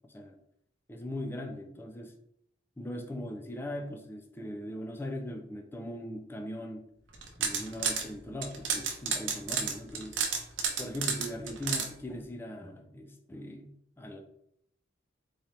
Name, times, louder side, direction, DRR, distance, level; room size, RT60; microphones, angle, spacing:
voice 1, 0.9-2.1 2.8-6.9 7.4-10.2 10.8-14.2, left 1 dB, 10° left, 3 dB, 0.4 m, -40 dB
sound 1, 7.1-8.0 8.4-11.9, right 6 dB, 70° right, 0.6 m, -31 dB
3.9 x 2.8 x 3.2 m, 0.75 s
head